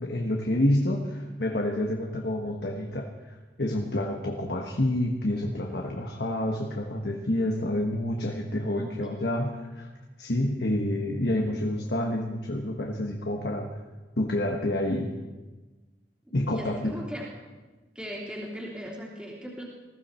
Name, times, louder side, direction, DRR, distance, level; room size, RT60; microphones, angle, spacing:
voice 1, 0.0-9.9 10.2-13.7 14.2-15.1 16.3-16.9, left 1 dB, 70° left, 1 dB, 1.4 m, -28 dB
voice 2, 8.8-9.1 16.5-17.3 17.9-19.6, equal, 5° right, -4 dB, 2.9 m, -38 dB
20.5 x 15.0 x 4.4 m, 1.2 s
head